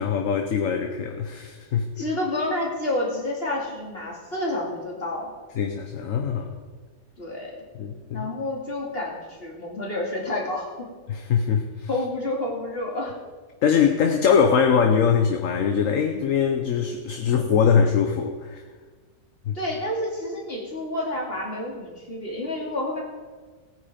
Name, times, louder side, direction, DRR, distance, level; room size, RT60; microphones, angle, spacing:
voice 1, 0.0-2.1 5.6-6.5 7.7-8.3 11.1-11.9 13.6-18.6 19.5-19.6, left 7 dB, 60° left, 5 dB, 1.2 m, -22 dB
voice 2, 2.0-5.3 7.2-7.5 8.1-10.9 11.9-13.1 19.5-23.0, left 1 dB, 40° left, -2 dB, 2.9 m, -29 dB
18.0 x 9.4 x 5.1 m, 1.4 s
omnidirectional pair, 1.6 m